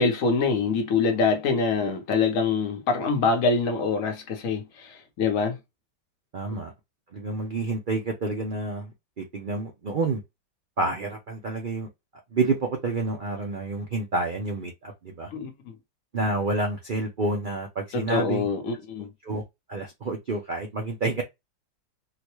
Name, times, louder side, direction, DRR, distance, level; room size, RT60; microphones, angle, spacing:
voice 1, 0.0-5.6 6.5-6.6 15.3-15.8 17.9-19.1, left 4 dB, 55° left, 1.2 m, -25 dB
voice 2, 6.3-6.7 7.1-8.9 9.2-10.2 10.8-11.9 12.3-15.3 16.1-18.5 19.2-19.4 19.7-21.2, right 3 dB, 55° right, 0.5 m, -29 dB
3.8 x 2.2 x 3.0 m
omnidirectional pair, 1.8 m